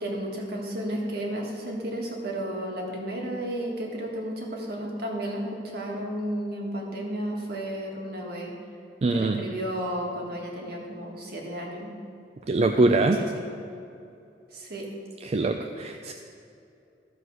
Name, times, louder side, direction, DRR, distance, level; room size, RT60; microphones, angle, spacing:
voice 1, 0.0-8.5 9.1-11.9 12.8-13.4 14.5-14.9, right 1 dB, 60° right, -1 dB, 1.8 m, -33 dB
voice 2, 9.0-9.5 12.5-13.2 15.2-16.1, right 2 dB, 35° right, 5 dB, 0.4 m, -23 dB
13.5 x 4.8 x 6.4 m, 2.7 s
head